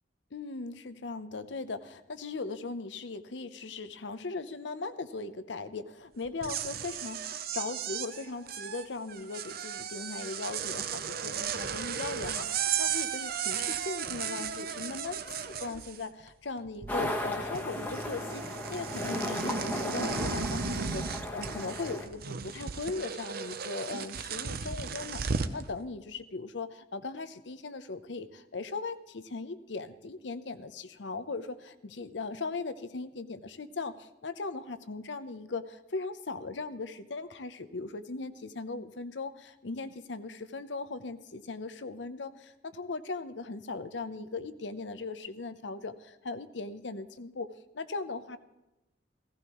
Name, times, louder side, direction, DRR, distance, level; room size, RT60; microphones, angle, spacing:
voice 1, 0.3-48.4, left 3 dB, 80° left, 11 dB, 0.8 m, -39 dB
sound 1, 6.3-16.3 16.6-17.3 17.5-25.6, right 7 dB, 55° right, 0.7 m, -35 dB
sound 2, 16.9-22.1, left 1 dB, 10° left, 1.2 m, -36 dB
16.5 x 15.0 x 3.1 m, 0.96 s
head